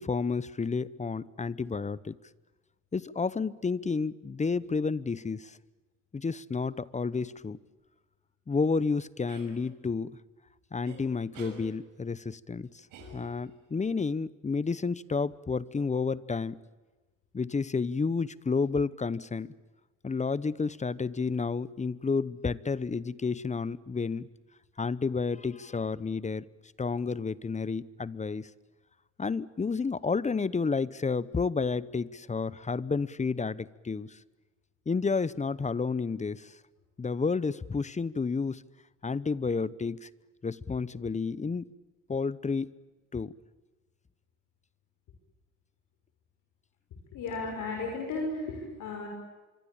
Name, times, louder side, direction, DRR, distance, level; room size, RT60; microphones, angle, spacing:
voice 1, 0.0-2.2 2.9-5.6 6.1-7.6 8.5-10.2 10.7-12.9 13.1-16.6 17.3-19.5 20.0-24.3 24.8-26.4 26.8-28.5 29.2-34.2 34.9-36.6 37.0-38.6 39.0-40.1 40.4-41.7 42.1-42.7 43.1-43.3, left 4 dB, 25° left, 19 dB, 0.9 m, -31 dB
sound 1, 9.3-9.5 10.9-11.0 11.3-11.6 12.9-13.6, right 5 dB, 90° right, 6.2 m, -48 dB
voice 2, 47.1-49.1, left 3 dB, 80° left, 2 dB, 6.1 m, -34 dB
25.5 x 24.0 x 8.7 m, 1.2 s
cardioid pair, 90°, 30 cm